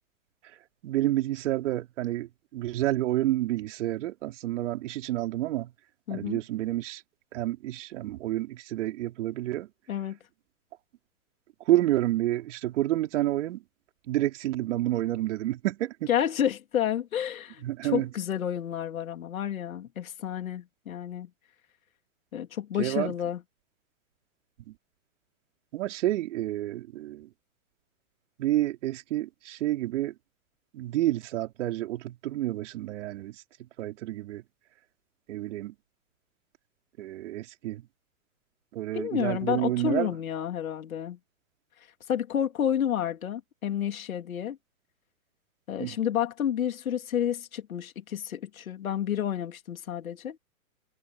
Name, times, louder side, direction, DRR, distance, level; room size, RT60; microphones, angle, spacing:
voice 1, 0.8-5.7 6.1-7.0 7.3-9.7 11.7-13.6 14.1-16.1 17.6-18.1 22.8-23.1 24.7-24.8 25.7-27.3 28.4-30.1 30.7-33.4 33.8-34.4 35.3-35.7 37.0-37.8 38.7-40.1 45.8-46.0, right 15 dB, 55° right, 4.6 m, -29 dB
voice 2, 6.1-6.4 9.9-10.2 16.1-21.3 22.3-23.4 38.9-41.2 42.1-44.6 45.7-50.4, left 10 dB, 75° left, 3.1 m, -30 dB
hypercardioid pair, 130°, 42 cm